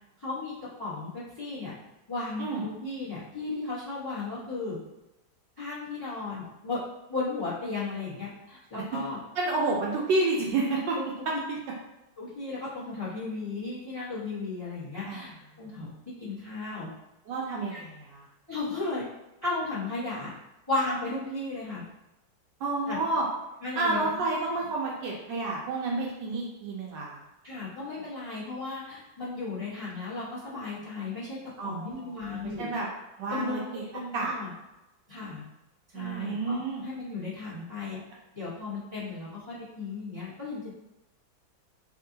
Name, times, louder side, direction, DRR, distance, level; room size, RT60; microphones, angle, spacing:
voice 1, 0.2-1.7 2.1-4.8 5.6-6.8 7.1-9.2 10.7-11.0 12.2-15.3 15.6-15.9 16.2-16.9 17.7-17.8 18.5-19.1 19.4-20.3 20.7-21.8 22.8-23.0 23.6-24.2 27.4-32.7 33.3-33.6 33.9-34.5 35.1-35.4 35.9-38.0 38.3-40.7, left 3 dB, 15° left, -9 dB, 0.9 m, -35 dB
voice 2, 9.4-11.0 15.1-15.3 17.3-18.2 22.6-23.2 23.8-27.2 31.6-32.9 33.2-33.8 34.1-34.3 35.9-36.8, right 3 dB, 75° right, -2 dB, 1.1 m, -30 dB
3.6 x 2.5 x 2.7 m, 0.95 s
omnidirectional pair, 2.1 m